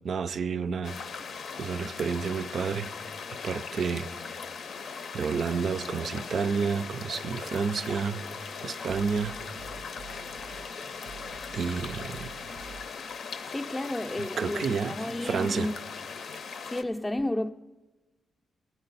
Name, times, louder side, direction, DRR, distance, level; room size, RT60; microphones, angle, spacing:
voice 1, 0.0-1.0 1.6-2.9 3.4-4.1 5.1-8.2 8.6-9.4 11.5-12.3 14.2-15.0 15.2-15.7, right 6 dB, 60° right, 0.4 m, -30 dB
sound 1, 0.8-16.8, left 5 dB, 70° left, 0.6 m, -39 dB
sound 2, 3.1-12.9, right 5 dB, 90° right, 0.7 m, -51 dB
voice 2, 13.4-15.7 16.7-17.5, left 1 dB, 15° left, 0.5 m, -32 dB
15.5 x 10.5 x 4.0 m
cardioid pair, 90°, 0 cm